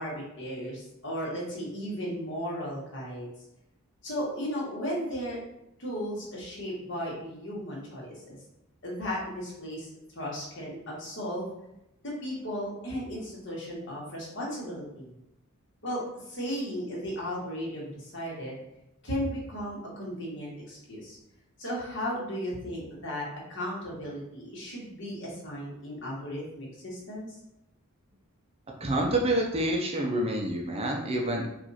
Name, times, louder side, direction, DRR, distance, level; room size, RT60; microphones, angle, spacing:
voice 1, 0.0-3.3 4.0-5.4 5.8-8.4 8.8-9.9 10.1-11.5 12.0-15.1 15.8-18.5 19.0-21.2 21.6-27.3, equal, 55° left, -4 dB, 1.7 m, -35 dB
voice 2, 28.8-31.5, right 1 dB, 25° right, 0 dB, 0.6 m, -27 dB
4.8 x 2.6 x 4.2 m, 0.85 s
head